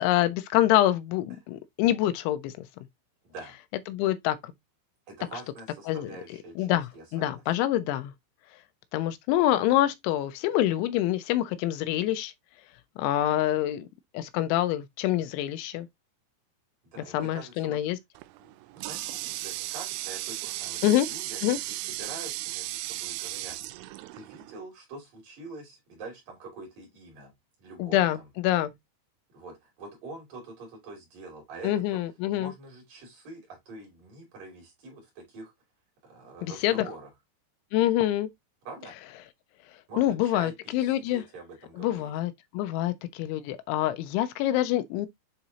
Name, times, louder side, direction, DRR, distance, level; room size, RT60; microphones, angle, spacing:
voice 1, 0.0-2.7 3.9-4.5 5.9-6.2 6.6-8.1 8.9-12.3 13.0-13.9 14.1-15.9 17.1-18.0 20.8-21.1 21.4-21.6 27.8-28.7 31.6-32.5 36.4-36.9 37.7-38.3 40.0-41.2 41.8-45.1, left 13 dB, 85° left, 3.0 m, -26 dB
voice 2, 3.2-3.5 5.1-7.4 16.8-17.8 18.4-23.6 24.1-27.3 27.6-28.3 29.3-31.7 32.3-35.5 36.0-37.1 38.7-38.9 39.9-42.1, right 3 dB, 50° right, 4.2 m, -45 dB
Water tap faucet, 18.2-24.6, right 17 dB, 90° right, 3.0 m, -36 dB
8.6 x 4.0 x 2.8 m
omnidirectional pair, 5.3 m